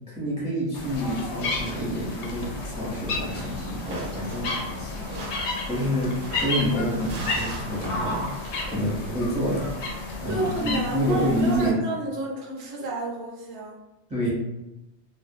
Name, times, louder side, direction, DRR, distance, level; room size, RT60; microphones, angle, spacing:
voice 1, 0.1-5.1 5.7-6.1 6.4-8.2 8.7-9.7 10.2-11.7 14.1-14.3, equal, 10° right, -6 dB, 0.4 m, -28 dB
sound 1, 0.7-11.7, left 2 dB, 80° left, 0.9 m, -32 dB
sound 2, 3.3-8.7, right 2 dB, 60° right, 0.6 m, -40 dB
voice 2, 10.3-13.7, right 2 dB, 80° right, -1 dB, 0.9 m, -31 dB
2.4 x 2.1 x 2.5 m, 0.95 s
omnidirectional pair, 1.2 m